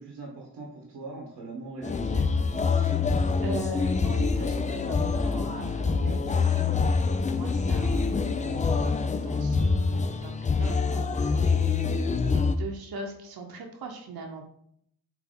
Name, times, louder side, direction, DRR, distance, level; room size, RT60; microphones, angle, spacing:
voice 1, 0.0-2.3, right 3 dB, 85° right, -1 dB, 0.9 m, -40 dB
sound 1, 1.8-12.6, left 4 dB, 20° left, 0.3 m, -25 dB
voice 2, 2.7-8.1 8.4-14.5, right 2 dB, 65° right, 2 dB, 0.9 m, -40 dB
3.7 x 2.8 x 3.7 m, 0.69 s
supercardioid pair, 50°, 40 cm